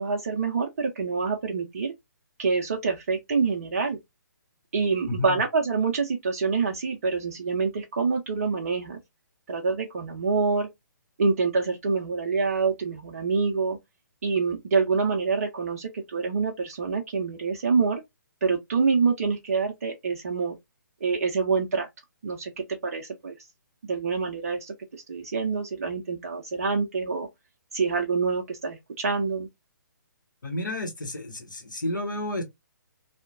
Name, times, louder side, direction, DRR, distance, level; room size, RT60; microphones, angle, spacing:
voice 1, 0.0-1.9 2.4-4.0 4.7-9.0 9.5-10.7 11.2-13.8 14.2-18.0 18.4-20.6 21.0-21.9 22.2-23.3 23.8-27.3 27.7-29.5, right 4 dB, 45° right, 0.4 m, -26 dB
voice 2, 5.1-5.4 30.4-32.4, left 1 dB, 70° left, 1.0 m, -31 dB
2.6 x 2.1 x 2.3 m
figure-of-eight pair, 135°, 11 cm